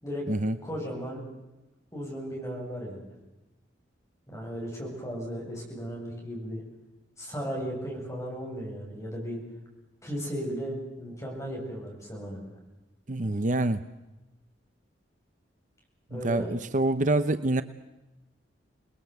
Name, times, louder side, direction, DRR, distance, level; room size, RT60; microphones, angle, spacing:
voice 1, 0.6-1.2 1.9-3.1 4.3-6.6 7.2-9.4 10.0-12.5 16.1-16.5, equal, 15° left, -2 dB, 7.9 m, -36 dB
voice 2, 13.1-13.8 16.1-17.6, right 2 dB, 40° right, 12 dB, 0.8 m, -26 dB
27.5 x 20.5 x 8.1 m, 1.0 s
head